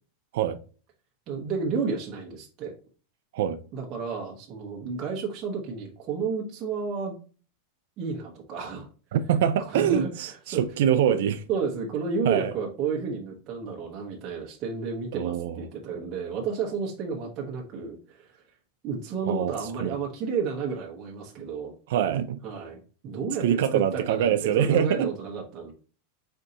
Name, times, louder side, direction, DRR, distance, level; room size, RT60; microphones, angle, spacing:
voice 1, 1.3-2.7 3.7-7.2 8.0-8.9 9.7-10.6 11.1-11.2 11.5-18.4 18.8-21.7 22.4-25.7, right 5 dB, 30° right, 0.8 m, -31 dB
voice 2, 9.1-11.4 12.3-12.5 15.1-15.6 19.3-19.5 19.8-20.0 21.9-22.4 23.4-25.1, right 9 dB, 65° right, 0.4 m, -24 dB
4.4 x 2.7 x 3.8 m
supercardioid pair, 170°, 0 cm